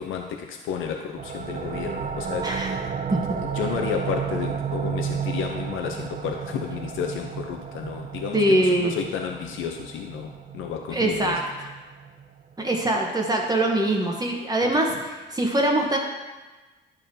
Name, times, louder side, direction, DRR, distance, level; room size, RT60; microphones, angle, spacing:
voice 1, 0.0-2.8 3.4-11.4 14.6-14.7, left 7 dB, 85° left, 3 dB, 0.6 m, -32 dB
sound 1, 1.2-12.5, right 7 dB, 40° right, 0.5 m, -32 dB
voice 2, 2.4-2.7 3.1-3.2 8.3-8.9 10.9-11.4 12.6-16.0, right 1 dB, 20° right, 0 dB, 1.0 m, -23 dB
10.5 x 5.2 x 2.7 m, 1.2 s
cardioid pair, 90°, 20 cm